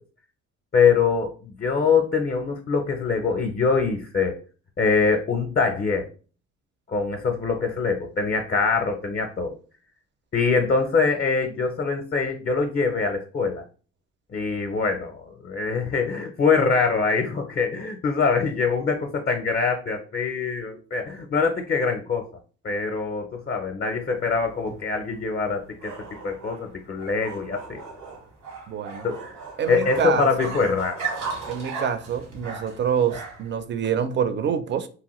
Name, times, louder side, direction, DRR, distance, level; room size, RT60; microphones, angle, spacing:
voice 1, 0.7-4.4 4.8-6.1 6.9-9.6 10.3-13.6 14.3-22.3 22.6-25.9 26.2-27.8 29.0-29.3 29.7-31.0, left 5 dB, 35° left, 0.5 m, -24 dB
sound 1, 24.2-33.6, right 4 dB, 85° right, 1.1 m, -37 dB
voice 2, 28.7-29.1 29.6-30.3 31.5-34.9, right 7 dB, 40° right, 0.4 m, -26 dB
2.8 x 2.2 x 3.0 m
cardioid pair, 90°, 30 cm